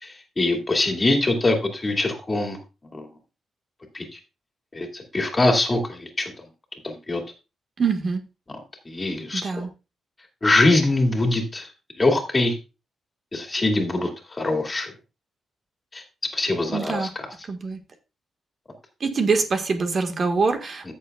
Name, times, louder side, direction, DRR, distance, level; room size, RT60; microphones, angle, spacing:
voice 1, 0.0-2.6 2.9-3.1 3.9-4.2 4.7-6.3 6.8-7.2 8.9-9.7 10.4-11.7 12.0-12.5 13.3-14.9 15.9-16.0 16.3-17.3, left 2 dB, 25° left, 3 dB, 2.3 m, -23 dB
voice 2, 7.8-8.2 9.3-9.7 16.7-17.1 17.5-17.8 19.0-20.9, right 4 dB, 45° right, 6 dB, 1.5 m, -24 dB
14.5 x 6.8 x 2.3 m, 0.29 s
cardioid pair, 105°, 0 cm